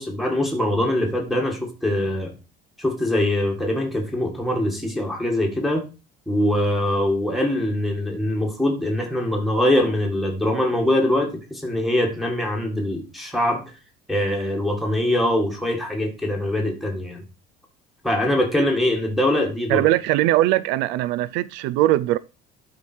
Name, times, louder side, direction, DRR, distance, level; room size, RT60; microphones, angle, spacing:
voice 1, 0.0-2.3 2.8-5.8 6.3-13.6 14.1-17.2 18.0-19.8, left 1 dB, ahead, 1.9 m, -23 dB
voice 2, 19.7-22.2, right 15 dB, 75° right, 0.4 m, -20 dB
12.0 x 4.7 x 4.5 m
cardioid pair, 170°, 18 cm